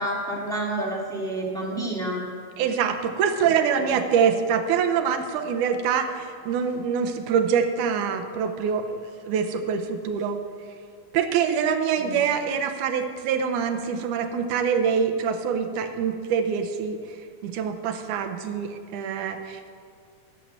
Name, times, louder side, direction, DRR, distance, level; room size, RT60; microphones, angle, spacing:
voice 1, 0.0-2.2 3.4-3.9 12.0-12.2, right 1 dB, ahead, -4 dB, 1.3 m, -29 dB
voice 2, 2.6-10.4 11.1-17.0 17.4-19.7, right 7 dB, 80° right, 6 dB, 2.2 m, -25 dB
11.5 x 7.2 x 7.5 m, 2.2 s
omnidirectional pair, 3.7 m